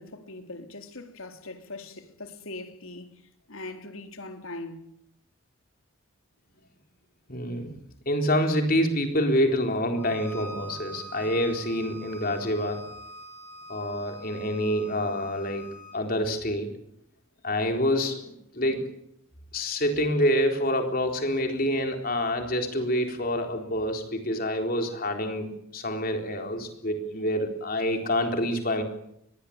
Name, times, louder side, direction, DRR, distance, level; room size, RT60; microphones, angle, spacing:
voice 1, 0.0-3.1 3.5-4.8, left 2 dB, 75° left, 3.8 m, -41 dB
voice 2, 7.3-7.8 8.1-12.8 13.7-15.6 15.9-16.7 17.4-18.9 19.5-28.8, equal, 45° left, 4.0 m, -27 dB
Bowed string instrument, 10.0-16.0, right 2 dB, 10° left, 6.4 m, -44 dB
24.0 x 22.0 x 8.8 m
head